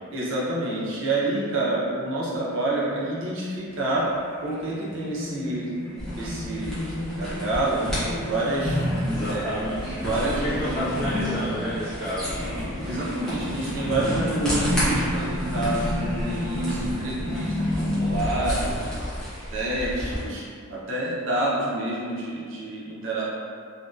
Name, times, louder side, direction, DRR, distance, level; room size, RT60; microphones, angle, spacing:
voice 1, 0.1-4.1 4.4-6.8 7.2-8.8 9.3-10.8 12.8-18.8 19.5-20.4 20.7-23.2, right 2 dB, 60° right, -6 dB, 0.5 m, -28 dB
sound 1, 3.7-20.3, left 1 dB, 80° left, 0.8 m, -37 dB
sound 2, 6.0-20.2, equal, ahead, 0.5 m, -33 dB
sound 3, 8.6-11.6 11.9-18.4, left 1 dB, 35° right, 1.0 m, -30 dB
voice 2, 9.0-12.3, equal, 40° left, -12 dB, 0.9 m, -31 dB
2.5 x 2.1 x 2.3 m, 2.2 s
head